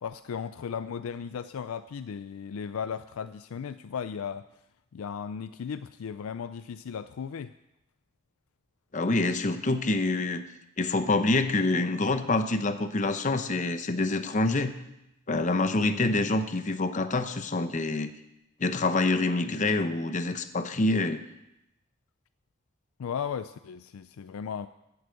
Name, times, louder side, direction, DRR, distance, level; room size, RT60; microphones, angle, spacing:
voice 1, 0.0-4.5 4.9-7.5 15.3-15.7 23.0-24.7, left 7 dB, 90° left, 12 dB, 0.4 m, -36 dB
voice 2, 8.9-10.4 10.8-14.7 15.3-18.1 18.6-21.2, left 2 dB, 35° left, 10 dB, 0.8 m, -26 dB
13.5 x 7.9 x 6.4 m, 0.88 s
head